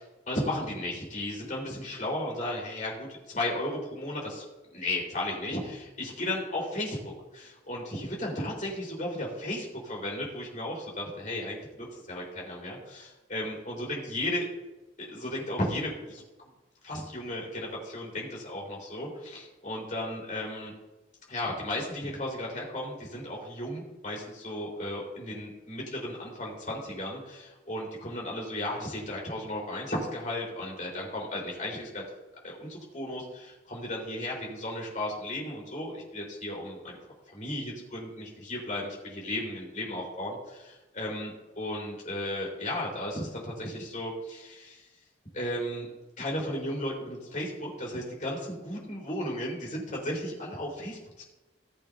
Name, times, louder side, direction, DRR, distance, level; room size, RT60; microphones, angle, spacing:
voice 1, 0.3-3.1 3.3-4.4 4.7-14.4 15.0-16.2 16.8-20.7 21.3-32.0 32.4-37.0 37.3-44.9 45.3-45.9 46.2-51.2, left 1 dB, 45° left, -3 dB, 4.5 m, -35 dB
19.0 x 8.2 x 2.8 m, 1.1 s
head